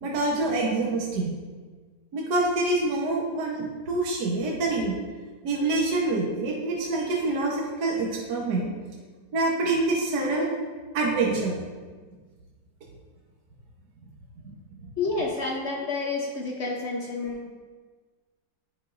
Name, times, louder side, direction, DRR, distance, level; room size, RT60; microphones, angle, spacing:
voice 1, 0.0-1.3 2.1-4.9 5.4-8.7 9.3-10.5 10.9-11.5 14.5-14.6, right 2 dB, 60° right, -2 dB, 1.5 m, -26 dB
voice 2, 15.0-17.5, left 3 dB, 60° left, -1 dB, 0.7 m, -29 dB
10.5 x 5.5 x 2.5 m, 1.4 s
omnidirectional pair, 2.0 m